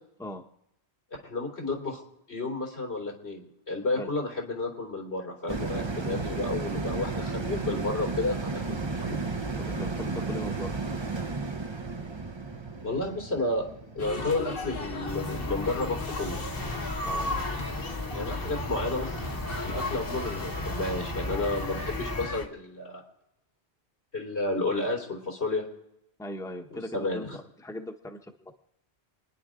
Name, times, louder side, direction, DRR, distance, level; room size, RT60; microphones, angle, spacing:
voice 1, 1.2-2.0 2.3-9.2 12.8-13.6 13.9-16.4 18.1-19.2 19.6-23.0 24.1-25.6 26.7-27.2, left 2 dB, 85° left, -1 dB, 3.9 m, -31 dB
sound 1, 5.5-16.2 16.6-16.7, right 3 dB, 30° right, 0.8 m, -34 dB
voice 2, 9.6-10.7 17.0-17.4 26.2-28.5, left 1 dB, 5° left, 3 dB, 1.1 m, -39 dB
sound 2, 14.0-22.5, left 2 dB, 60° left, 1.6 m, -35 dB
sound 3, 15.1-22.3, left 2 dB, 20° left, 1.3 m, -36 dB
29.0 x 10.5 x 3.8 m, 0.84 s
omnidirectional pair, 1.1 m